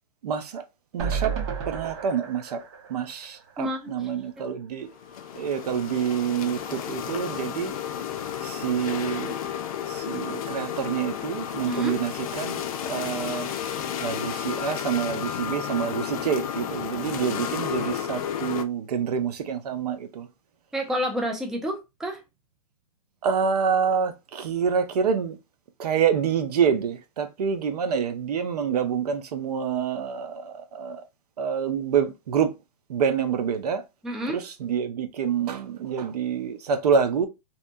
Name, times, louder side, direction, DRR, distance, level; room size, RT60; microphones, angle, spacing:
voice 1, 0.2-0.6 0.9-1.3 1.7-2.6 2.9-4.9 5.3-7.7 8.4-9.4 9.9-13.5 14.0-20.3 23.2-25.4 25.8-31.0 31.4-32.5 32.9-33.8 34.3-37.3, right 7 dB, 75° right, 0.6 m, -27 dB
sound 1, 1.0-4.2 4.6-4.7 4.9-5.0, right 6 dB, 40° right, 0.7 m, -33 dB
voice 2, 3.6-4.0 4.4-4.5 11.7-12.0 20.7-22.2 34.0-34.4, equal, ahead, 0.4 m, -29 dB
sound 2, 4.9-18.6, left 9 dB, 65° left, 0.4 m, -32 dB
2.8 x 2.2 x 2.5 m
hypercardioid pair, 130°, 20 cm